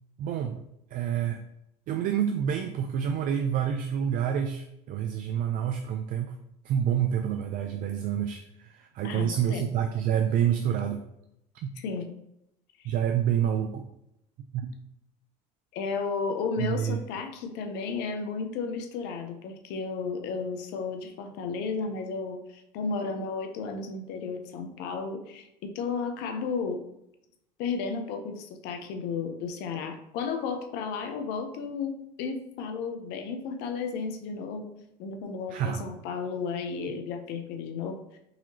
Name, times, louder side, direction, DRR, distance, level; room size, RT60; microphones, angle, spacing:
voice 1, 0.2-0.7 0.9-1.4 1.9-6.4 6.6-11.0 11.6-11.7 12.8-13.9 14.5-14.7 16.6-17.0 35.5-35.9, right 9 dB, 50° right, 5 dB, 0.4 m, -28 dB
voice 2, 9.0-9.7 11.8-12.1 12.8-12.9 15.7-26.8 27.6-34.7 35.0-38.0, left 5 dB, 70° left, 6 dB, 0.6 m, -33 dB
4.0 x 2.9 x 2.8 m, 0.81 s
supercardioid pair, 85°, 18 cm